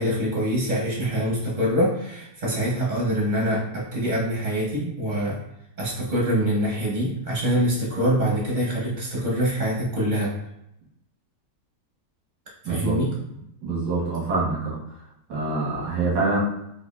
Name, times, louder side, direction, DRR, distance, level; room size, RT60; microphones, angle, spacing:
voice 1, 0.0-5.4 5.8-10.3 12.6-13.1, equal, 45° right, -4 dB, 0.6 m, -24 dB
voice 2, 12.6-13.0 13.6-15.0 15.3-16.4, right 3 dB, 90° right, -6 dB, 1.8 m, -25 dB
4.8 x 2.5 x 2.3 m, 0.81 s
omnidirectional pair, 1.9 m